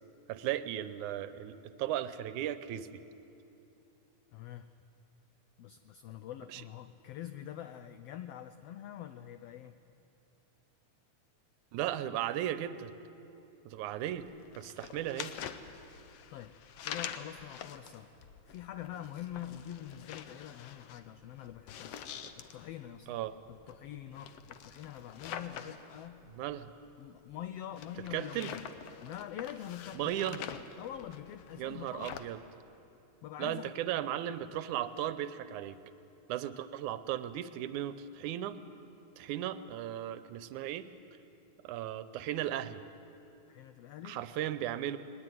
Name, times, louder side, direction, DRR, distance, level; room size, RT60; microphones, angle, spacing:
voice 1, 0.3-3.0 6.5-6.6 11.7-12.9 13.7-14.3 14.6-15.3 22.2-22.3 23.1-23.4 26.3-26.7 28.1-28.5 29.9-30.4 31.6-32.4 33.4-35.8 36.3-38.6 39.2-40.9 41.6-42.8 44.0-45.0, right 12 dB, 80° right, 13 dB, 2.2 m, -36 dB
voice 2, 4.3-4.7 5.6-9.7 13.2-13.3 16.3-16.5 16.8-18.1 18.5-22.0 22.4-23.1 23.5-26.2 27.0-28.6 29.0-30.4 30.8-32.3 33.2-33.7 43.5-44.2, left 11 dB, 85° left, 11 dB, 1.4 m, -45 dB
sound 1, 14.1-32.3, left 8 dB, 65° left, 1.7 m, -46 dB
21.0 x 20.0 x 9.3 m, 2.8 s
omnidirectional pair, 3.5 m